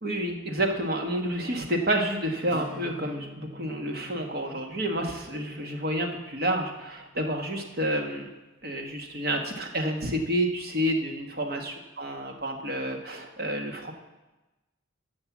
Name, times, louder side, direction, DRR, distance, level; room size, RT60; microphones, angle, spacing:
voice 1, 0.0-8.3 8.6-13.9, right 1 dB, 50° right, 3 dB, 1.3 m, -29 dB
Acoustic guitar / Strum, 2.5-8.0, left 1 dB, 5° left, 4.3 m, -48 dB
13.5 x 5.3 x 7.1 m, 1.1 s
head